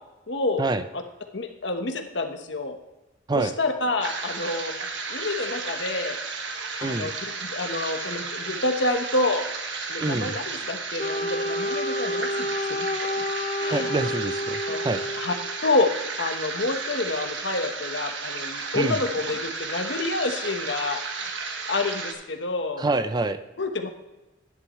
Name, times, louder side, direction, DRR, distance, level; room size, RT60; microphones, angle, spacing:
voice 1, 0.3-0.6 0.9-1.0 1.3-2.8 3.3-4.7 5.1-6.2 6.8-7.2 7.4-9.5 9.9-13.1 13.6-13.9 14.7-14.8 15.2-15.3 15.6-15.9 16.2-21.3 21.7-22.8 23.6-23.9, left 2 dB, 65° left, 5 dB, 1.2 m, -28 dB
sound 1, 4.0-22.1, right 4 dB, 70° right, 1.4 m, -33 dB
voice 2, 6.8-7.1 10.0-10.4 13.7-15.0 18.7-19.0 22.8-23.4, right 2 dB, 20° right, 11 dB, 0.4 m, -26 dB
Wind instrument woodwind instrument, 11.0-15.6, left 1 dB, 35° left, 0.6 m, -30 dB
11.0 x 11.0 x 3.1 m, 1.0 s
head